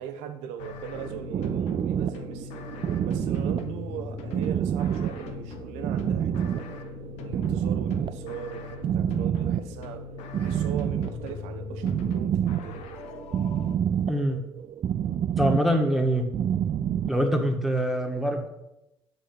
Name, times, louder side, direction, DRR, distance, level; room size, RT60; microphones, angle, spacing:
voice 1, 0.0-2.6 3.0-6.8 7.2-10.1 10.4-12.8, right 8 dB, 65° right, 8 dB, 1.0 m, -40 dB
sound 1, 0.6-13.8, left 6 dB, 60° left, 0.9 m, -40 dB
sound 2, 0.9-17.6, right 9 dB, 40° right, 0.5 m, -29 dB
voice 2, 14.1-14.4 15.4-16.3 17.0-18.5, equal, ahead, 2 dB, 1.9 m, -24 dB
9.1 x 6.4 x 5.9 m, 0.92 s
figure-of-eight pair, 50°, 12 cm